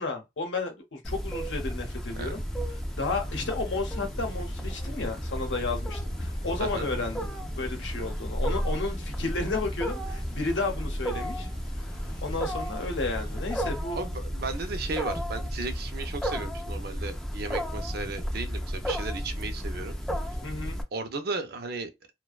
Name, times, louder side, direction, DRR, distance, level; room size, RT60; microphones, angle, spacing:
voice 1, 0.0-2.4 2.9-7.3 7.5-11.5 12.2-14.0 20.4-20.8, left 3 dB, 90° left, 0.7 m, -32 dB
Wild animals, 1.0-20.8, equal, 5° left, 0.3 m, -33 dB
sound 1, 1.6-13.6, left 1 dB, 50° left, 0.7 m, -46 dB
voice 2, 13.9-20.0 20.9-21.9, right 3 dB, 60° right, 0.5 m, -35 dB
2.5 x 2.1 x 2.3 m
head